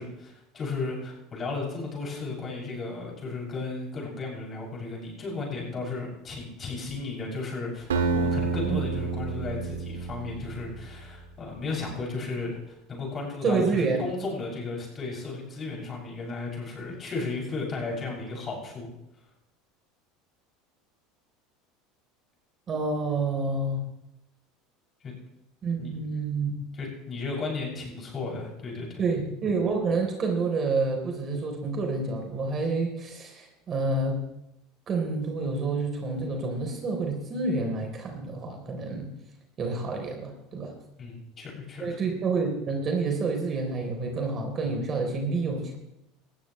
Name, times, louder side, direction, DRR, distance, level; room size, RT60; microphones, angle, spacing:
voice 1, 0.0-18.9 25.0-25.1 25.8-25.9 26.7-29.0 41.0-42.0, left 3 dB, 35° left, -2 dB, 7.1 m, -34 dB
Acoustic guitar, 7.9-10.9, right 4 dB, 90° right, 1.7 m, -29 dB
voice 2, 13.4-14.0 22.7-23.8 25.6-26.6 29.0-34.2 34.9-39.1 39.6-40.7 41.8-45.8, right 3 dB, 40° right, 2 dB, 3.7 m, -28 dB
19.0 x 14.5 x 3.3 m, 0.86 s
hypercardioid pair, 85°, 0 cm